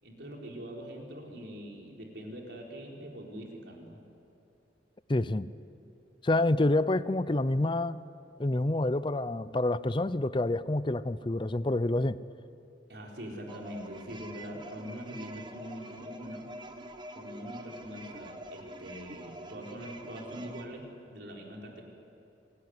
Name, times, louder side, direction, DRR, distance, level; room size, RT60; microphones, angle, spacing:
voice 1, 0.0-4.0 12.9-16.4 17.1-21.8, equal, 65° right, -1 dB, 4.5 m, -43 dB
voice 2, 5.1-5.5 6.2-8.0 8.4-12.2, left 2 dB, 25° left, 15 dB, 0.6 m, -27 dB
sound 1, 13.5-20.7, right 1 dB, 25° right, 1.4 m, -46 dB
26.5 x 20.0 x 9.7 m, 2.7 s
head